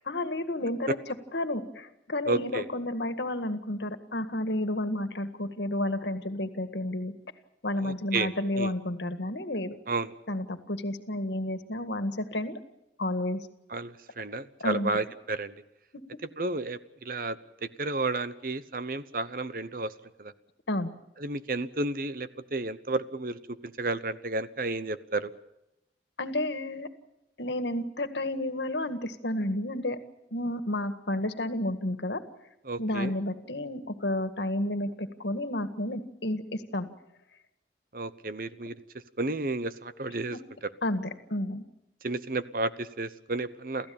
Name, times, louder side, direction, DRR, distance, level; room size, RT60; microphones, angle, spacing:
voice 1, 0.1-1.0 1.3-7.1 7.6-9.8 10.3-12.5 13.0-13.5 14.6-15.0 20.7-20.9 26.2-26.9 27.4-30.0 30.3-32.2 32.8-36.9 40.8-41.6, left 1 dB, 75° left, 10 dB, 1.9 m, -31 dB
voice 2, 2.3-2.7 7.8-8.7 9.9-10.1 13.7-15.5 16.4-19.9 20.2-20.3 21.2-25.3 32.7-33.1 37.9-38.8 39.2-40.7 42.0-43.9, right 2 dB, 50° right, 14 dB, 1.0 m, -32 dB
29.0 x 15.0 x 8.8 m, 0.88 s
head